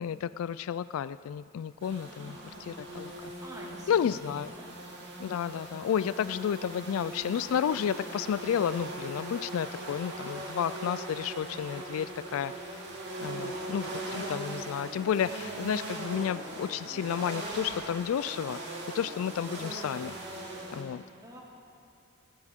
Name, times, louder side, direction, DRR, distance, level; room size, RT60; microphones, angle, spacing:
voice 1, 0.0-2.4 2.6-3.3 3.9-4.5 5.2-12.5 13.2-18.6 18.9-20.1 20.7-21.0, left 8 dB, 75° left, 16 dB, 0.3 m, -31 dB
sound 1, 1.8-20.8, right 2 dB, 55° right, 2.4 m, -40 dB
voice 2, 2.0-2.7 3.4-4.7 13.2-13.6 21.2-21.4, equal, 15° right, -3 dB, 2.0 m, -48 dB
18.5 x 15.5 x 3.6 m, 2.5 s
head